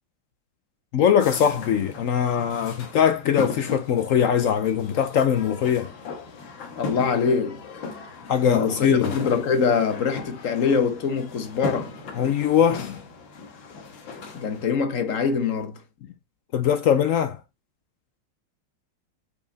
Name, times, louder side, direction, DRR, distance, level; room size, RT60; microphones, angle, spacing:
voice 1, 0.9-5.9 8.3-9.1 12.2-13.0 16.5-17.4, left 8 dB, 75° left, 0.7 m, -21 dB
sound 1, 1.2-14.7, left 3 dB, 90° left, 1.9 m, -37 dB
voice 2, 6.8-7.6 8.5-11.9 14.3-15.8, left 5 dB, 50° left, 1.1 m, -24 dB
5.6 x 4.9 x 3.9 m
omnidirectional pair, 2.0 m